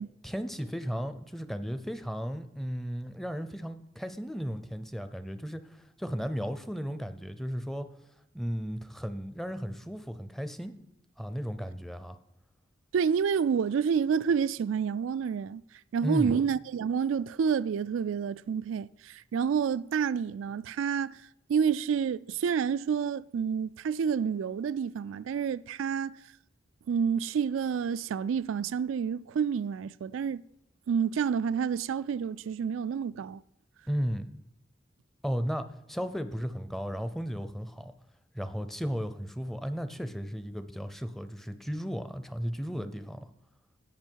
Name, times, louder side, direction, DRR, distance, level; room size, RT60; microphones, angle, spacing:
voice 1, 0.2-7.9 8.3-10.7 11.2-12.2 16.0-16.4 33.9-34.3 35.2-37.9 38.3-43.3, equal, ahead, 0.5 m, -35 dB
voice 2, 12.9-15.6 15.9-21.2 21.5-26.2 26.9-30.4 30.9-33.4, right 7 dB, 85° right, 0.3 m, -29 dB
16.5 x 5.6 x 4.6 m
head